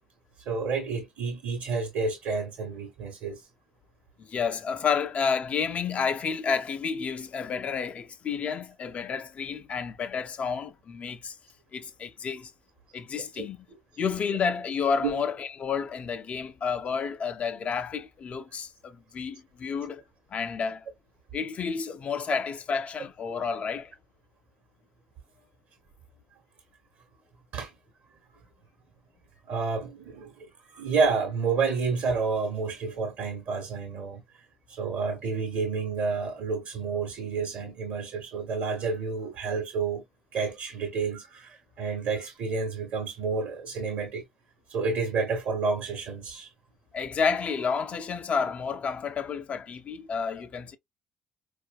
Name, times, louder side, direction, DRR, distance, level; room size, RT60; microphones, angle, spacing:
voice 1, 0.5-3.4 13.3-13.8 15.0-15.2 27.5-27.7 29.5-34.2 34.7-40.0 40.3-44.2 44.7-46.5, right 4 dB, 60° right, 1.1 m, -30 dB
voice 2, 4.2-11.4 11.7-12.5 12.9-13.6 14.0-20.0 20.3-20.9 21.3-23.9 46.9-50.8, left 6 dB, 40° left, 0.5 m, -30 dB
4.4 x 2.4 x 2.4 m
figure-of-eight pair, 45°, 3 cm